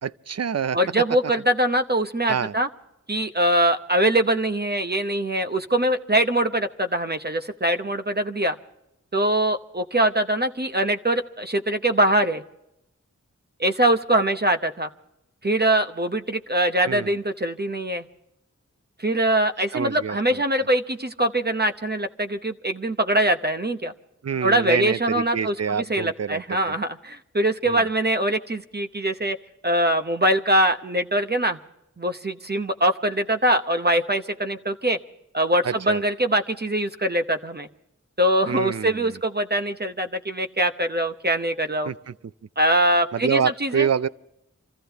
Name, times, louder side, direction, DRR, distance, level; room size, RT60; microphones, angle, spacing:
voice 1, 0.0-0.8 2.3-2.5 16.9-17.1 19.7-20.4 24.2-26.8 27.7-27.8 35.6-36.0 38.5-39.2 41.9-42.1 43.1-44.1, right 7 dB, 55° right, 0.5 m, -27 dB
voice 2, 0.7-2.7 3.1-8.5 9.1-12.4 13.6-14.9 15.4-18.1 19.0-23.9 24.4-29.4 29.6-31.6 32.0-35.0 35.3-37.7 38.2-41.9 42.6-43.9, right 1 dB, 35° right, 0.8 m, -23 dB
26.5 x 14.5 x 3.4 m
wide cardioid pair, 45°, 30 cm